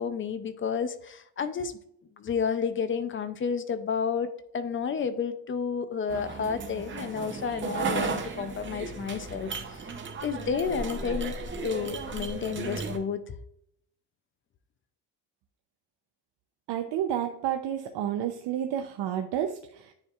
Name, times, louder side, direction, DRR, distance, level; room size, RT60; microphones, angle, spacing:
voice 1, 0.0-1.7 2.2-9.9 10.2-11.3 11.6-13.3, left 6 dB, 30° left, 11 dB, 0.4 m, -31 dB
sound 1, 6.1-13.0, right 4 dB, 30° right, 0.7 m, -35 dB
voice 2, 16.7-19.9, right 10 dB, 85° right, 5 dB, 0.7 m, -30 dB
9.7 x 4.4 x 2.4 m, 0.73 s
cardioid pair, 170°, 41 cm